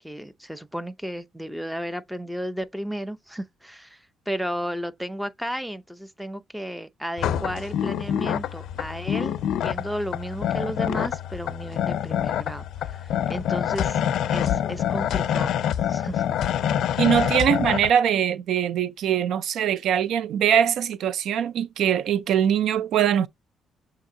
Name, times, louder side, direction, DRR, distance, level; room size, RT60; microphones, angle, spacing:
voice 1, 0.0-4.0 4.3-14.0 14.3-15.5 15.9-16.2, equal, 5° right, 0.6 m, -33 dB
sound 1, 7.2-17.9, left 10 dB, 70° left, 0.4 m, -26 dB
voice 2, 17.0-23.3, right 9 dB, 70° right, 0.3 m, -22 dB
6.9 x 2.8 x 2.6 m
cardioid pair, 105°, 0 cm